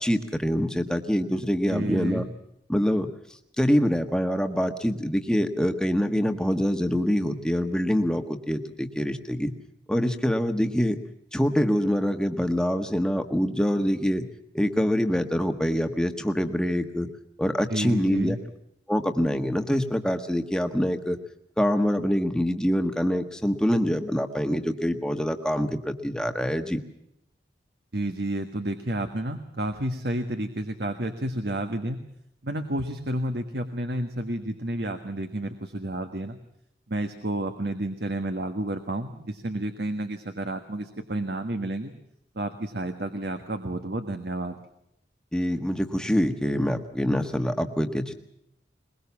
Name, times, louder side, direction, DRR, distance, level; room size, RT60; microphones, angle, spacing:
voice 1, 0.0-2.3 2.7-3.1 3.6-9.5 9.9-11.0 11.3-14.2 14.5-17.1 17.4-18.4 18.9-21.2 21.6-26.8 45.3-48.1, equal, 5° left, 6 dB, 1.4 m, -25 dB
voice 2, 1.7-2.2 17.7-18.4 27.9-32.0 32.4-36.4 36.9-41.9 42.3-44.6, right 1 dB, 65° right, 7 dB, 1.5 m, -30 dB
22.0 x 21.5 x 7.1 m, 0.78 s
head